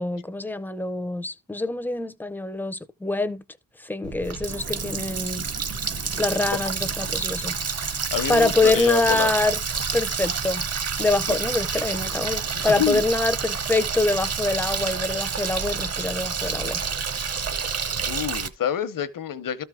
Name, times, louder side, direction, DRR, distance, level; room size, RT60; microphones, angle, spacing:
voice 1, 0.0-3.4 3.8-5.5 6.2-7.5 8.3-9.6 9.9-10.6 11.0-16.8 17.2-17.3, left 2 dB, 5° left, 0.5 m, -25 dB
Water tap faucet, 4.0-18.5, right 5 dB, 45° right, 0.9 m, -28 dB
voice 2, 8.1-9.3 11.3-11.4 12.5-13.0 18.1-19.6, left 9 dB, 70° left, 0.9 m, -27 dB
13.5 x 4.6 x 3.6 m
wide cardioid pair, 180°, 35 cm